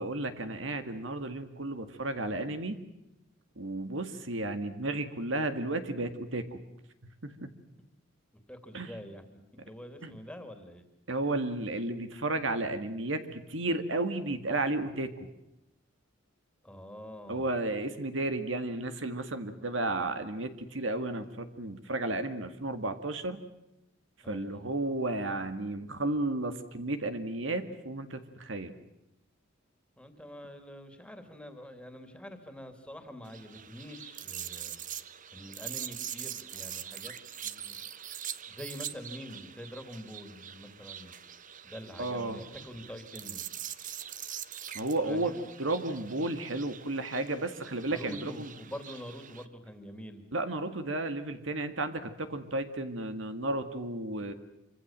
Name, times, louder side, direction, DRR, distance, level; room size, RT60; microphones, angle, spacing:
voice 1, 0.0-2.8 3.6-6.6 7.2-7.5 8.7-8.9 10.0-10.2 11.1-15.1 17.3-23.4 24.3-28.7 42.0-42.4 44.7-45.3 45.6-48.5 50.3-54.3, right 2 dB, 70° right, 9 dB, 2.0 m, -33 dB
voice 2, 8.5-9.2 9.6-10.8 16.6-17.6 24.2-24.6 30.0-34.8 35.3-37.1 37.4-37.8 38.5-41.1 41.6-43.5 45.0-45.5 47.9-50.2, equal, 5° left, 8 dB, 3.0 m, -45 dB
sound 1, 33.3-49.5, right 10 dB, 40° right, 1.1 m, -43 dB
26.5 x 25.0 x 7.5 m, 0.89 s
head